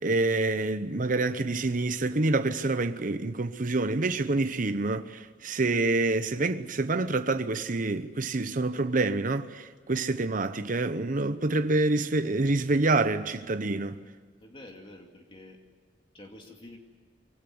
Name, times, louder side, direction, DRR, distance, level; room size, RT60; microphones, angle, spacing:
voice 1, 0.0-14.0, right 2 dB, 45° right, 0.9 m, -27 dB
voice 2, 14.4-15.6 16.1-16.8, left 1 dB, 30° left, 2.4 m, -48 dB
24.0 x 18.0 x 9.5 m
head